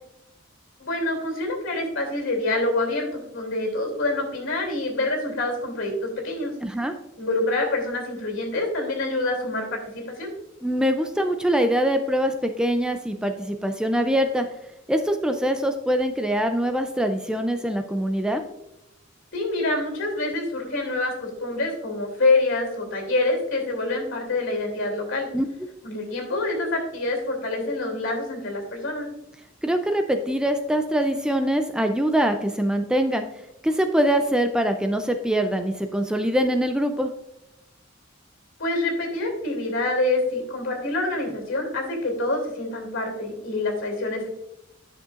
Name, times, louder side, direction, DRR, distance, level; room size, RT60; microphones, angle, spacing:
voice 1, 0.8-6.5 7.2-10.3 19.3-25.3 25.8-29.1 38.6-44.3, left 2 dB, 70° left, 1 dB, 2.8 m, -26 dB
voice 2, 6.6-6.9 10.6-14.5 14.9-18.4 25.3-25.4 29.6-33.2 33.6-37.1, equal, 5° right, 6 dB, 0.4 m, -23 dB
10.5 x 6.4 x 2.5 m, 0.87 s
head